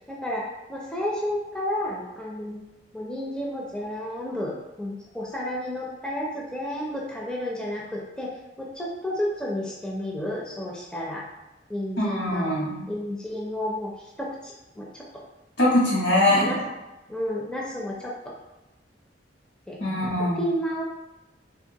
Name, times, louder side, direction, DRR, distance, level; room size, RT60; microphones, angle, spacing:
voice 1, 0.1-0.4 0.7-2.6 2.9-8.3 8.6-11.3 11.7-12.5 12.9-15.1 16.3-16.6 17.1-18.1 19.7-19.8 20.0-20.1 20.4-20.8, left 1 dB, 5° left, -4 dB, 0.4 m, -31 dB
voice 2, 12.0-12.8 15.6-16.6 19.8-20.4, left 1 dB, 75° left, -4 dB, 1.1 m, -22 dB
3.4 x 2.5 x 2.8 m, 0.98 s
head